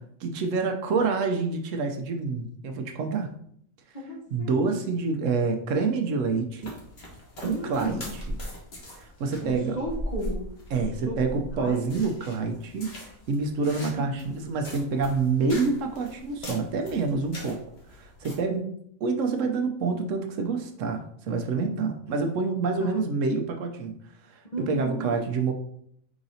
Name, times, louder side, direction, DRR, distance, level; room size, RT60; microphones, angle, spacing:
voice 1, 0.2-3.3 4.3-6.8 7.4-8.4 9.0-9.8 10.7-17.6 17.9-18.7 19.0-24.0 24.3-25.5, right 4 dB, 75° right, 5 dB, 0.9 m, -27 dB
voice 2, 3.9-4.8 7.4-8.1 9.4-10.4 10.7-11.2 11.6-11.8 13.8-14.2 22.8-22.9 24.5-25.2, equal, 35° left, -2 dB, 1.0 m, -35 dB
sound 1, 6.6-18.4, equal, 50° left, 1.3 m, -40 dB
4.8 x 4.0 x 2.6 m, 0.67 s
omnidirectional pair, 1.4 m